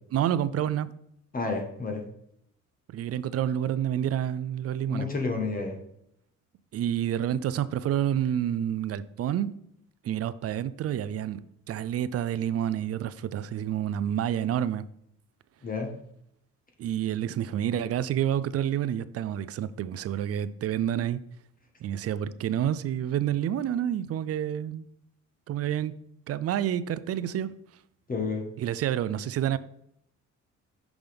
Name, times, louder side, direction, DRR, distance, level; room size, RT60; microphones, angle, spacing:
voice 1, 0.1-0.9 2.9-5.1 6.7-9.6 10.0-14.9 16.8-21.2 21.8-24.8 25.5-26.0 26.3-27.5 28.6-29.6, right 10 dB, 55° right, 0.4 m, -29 dB
voice 2, 1.3-2.0 4.9-5.8 15.6-15.9 28.1-28.4, left 4 dB, 30° left, 1.2 m, -30 dB
6.0 x 5.3 x 3.4 m
cardioid pair, 90°, 30 cm